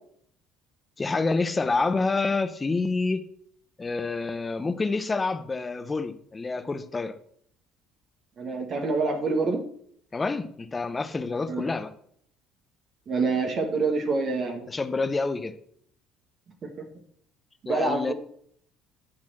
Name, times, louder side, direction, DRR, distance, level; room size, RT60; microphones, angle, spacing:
voice 1, 1.0-3.3 3.8-7.2 10.1-11.9 14.7-15.6 17.7-18.1, left 3 dB, 20° left, 0.8 m, -28 dB
voice 2, 8.4-9.6 11.5-11.7 13.1-14.6 17.6-18.1, right 3 dB, 40° right, 1.5 m, -26 dB
10.5 x 4.3 x 7.4 m
cardioid pair, 130°, 0 cm